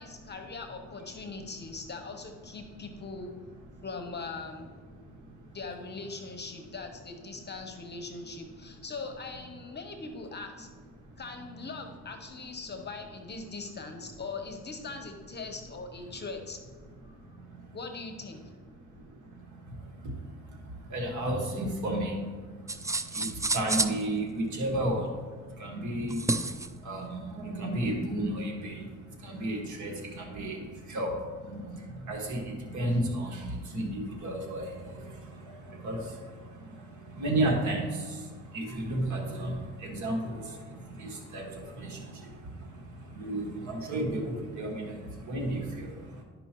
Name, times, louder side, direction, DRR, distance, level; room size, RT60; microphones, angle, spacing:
voice 1, 0.0-3.3 3.8-4.8 5.5-10.7 11.2-16.6 17.0-17.2 17.7-18.4, left 4 dB, 35° left, 5 dB, 0.8 m, -41 dB
voice 2, 4.9-5.6 10.9-11.2 17.1-17.8 18.7-46.2, right 1 dB, 75° right, 1 dB, 1.7 m, -34 dB
sound 1, 22.7-24.0 26.1-26.7, right 2 dB, 10° right, 0.3 m, -29 dB
11.5 x 5.3 x 3.0 m, 1.5 s
cardioid pair, 90°, 30 cm